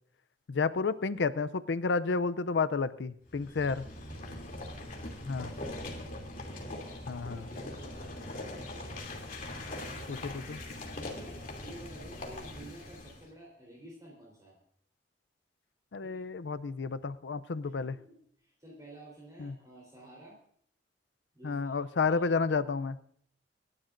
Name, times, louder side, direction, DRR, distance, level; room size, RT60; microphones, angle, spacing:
voice 1, 0.5-3.8 5.2-5.5 7.1-7.4 10.1-10.6 15.9-18.0 19.4-19.5 21.4-23.0, left 4 dB, 75° left, 15 dB, 0.5 m, -31 dB
sound 1, 3.3-13.3, left 1 dB, 50° left, 2.8 m, -41 dB
voice 2, 4.1-4.8 5.5-6.2 7.3-9.1 9.7-10.4 11.2-14.6 16.0-16.3 17.6-20.4 21.3-22.4, right 1 dB, 20° right, -3 dB, 3.8 m, -53 dB
28.5 x 12.0 x 2.6 m, 0.63 s
head